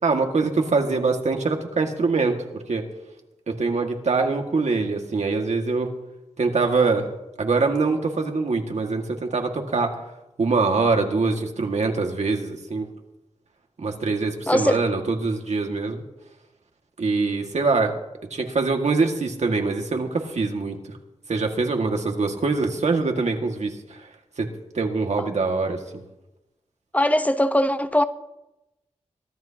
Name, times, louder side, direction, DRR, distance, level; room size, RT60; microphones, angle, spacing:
voice 1, 0.0-2.8 3.5-5.9 6.4-7.1 7.4-9.9 10.4-12.9 13.8-16.0 17.0-17.9 18.3-20.8 21.3-24.1 24.4-24.5 24.7-26.0, right 4 dB, 75° right, 2.0 m, -23 dB
voice 2, 14.5-14.8 26.9-28.0, left 1 dB, 10° left, 1.0 m, -20 dB
23.0 x 12.5 x 3.0 m
cardioid pair, 55°, 12 cm